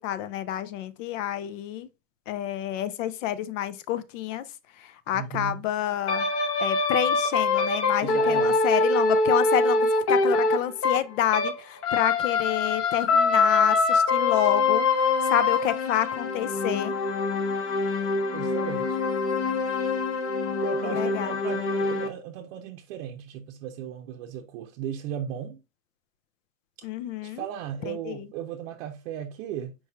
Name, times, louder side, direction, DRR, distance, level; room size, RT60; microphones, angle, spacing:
voice 1, 0.0-1.9 2.3-4.5 4.7-6.3 6.6-16.9 20.8-21.3 26.8-27.4 27.9-28.3, left 11 dB, 65° left, 0.7 m, -29 dB
voice 2, 5.1-5.6 8.0-8.6 18.3-19.0 20.6-25.6 27.2-29.7, right 9 dB, 55° right, 0.6 m, -36 dB
sound 1, 6.1-11.6 11.8-22.1, left 3 dB, 30° left, 0.8 m, -24 dB
4.7 x 4.2 x 2.2 m
hypercardioid pair, 120°, 42 cm